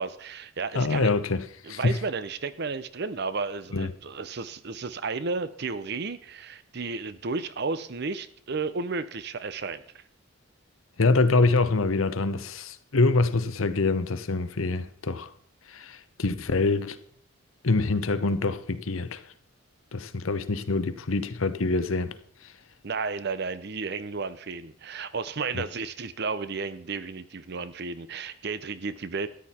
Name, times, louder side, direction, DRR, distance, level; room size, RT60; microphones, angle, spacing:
voice 1, 0.0-1.1 1.6-10.0 22.8-29.3, right 4 dB, 55° right, 0.7 m, -33 dB
voice 2, 0.7-1.4 1.7-2.0 3.7-3.9 11.0-15.3 15.7-17.0 17.6-19.2 19.9-22.1 25.5-25.6, left 3 dB, 80° left, 0.9 m, -25 dB
13.5 x 10.0 x 4.3 m
head